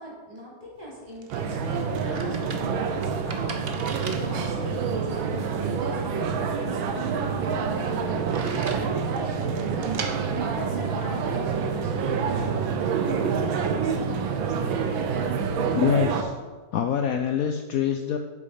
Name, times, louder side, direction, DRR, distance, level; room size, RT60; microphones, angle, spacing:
voice 1, 0.0-10.0 10.3-14.7, equal, 20° right, -6 dB, 3.4 m, -40 dB
sound 1, 0.8-11.6, right 5 dB, 55° right, 0.6 m, -41 dB
sound 2, 1.3-16.2, right 6 dB, 90° right, 1.6 m, -27 dB
voice 2, 15.7-16.3 16.7-18.2, left 8 dB, 80° left, 6 dB, 0.8 m, -25 dB
8.2 x 7.4 x 5.6 m, 1.3 s
omnidirectional pair, 2.1 m